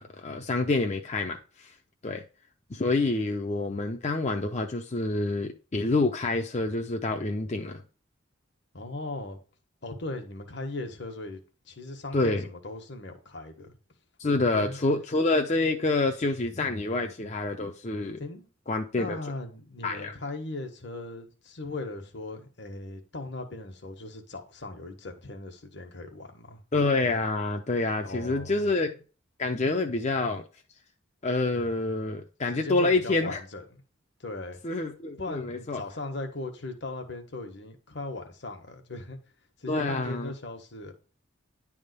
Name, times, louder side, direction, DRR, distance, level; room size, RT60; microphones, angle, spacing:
voice 1, 0.0-1.7 2.0-2.2 2.7-7.8 12.1-12.5 14.2-18.2 18.7-19.2 19.8-20.1 26.7-28.9 29.4-30.4 31.2-33.4 34.6-35.8 39.7-40.3, left 2 dB, 35° left, 0.6 m, -27 dB
voice 2, 8.7-9.4 9.8-13.7 14.4-14.8 18.2-18.5 19.0-26.6 28.0-28.7 32.5-33.8 34.2-34.6 35.2-39.2 39.6-40.9, left 2 dB, 65° left, 1.4 m, -38 dB
10.5 x 3.6 x 6.7 m
head